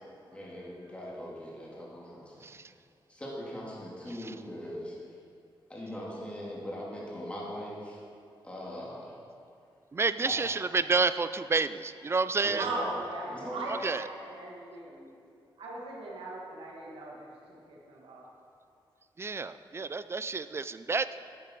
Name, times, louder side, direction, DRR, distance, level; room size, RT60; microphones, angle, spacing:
voice 1, 0.3-2.5 3.1-5.0 5.7-8.0 8.4-9.2 12.4-12.9 13.3-13.6, equal, 15° left, -6 dB, 2.6 m, -40 dB
voice 2, 9.9-12.7 13.8-14.0 19.2-21.1, right 4 dB, 30° right, 13 dB, 0.3 m, -29 dB
voice 3, 12.6-15.1 15.6-18.2, right 2 dB, 85° right, -3 dB, 1.8 m, -38 dB
11.0 x 8.5 x 4.6 m, 2.3 s
wide cardioid pair, 105°, 9 cm